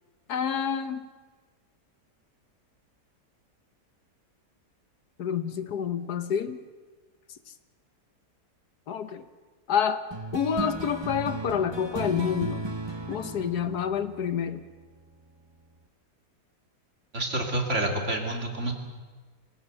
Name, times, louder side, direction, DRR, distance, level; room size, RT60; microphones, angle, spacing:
voice 1, 0.3-1.1 5.2-6.6 8.9-9.2 9.7-10.0 10.3-12.7 13.1-14.6, left 8 dB, 70° left, 11 dB, 1.4 m, -28 dB
sound 1, 10.1-15.0, right 2 dB, 20° right, 0.8 m, -36 dB
voice 2, 17.1-18.7, right 1 dB, 40° right, 2 dB, 3.1 m, -28 dB
24.5 x 17.0 x 8.0 m, 1.4 s
omnidirectional pair, 1.8 m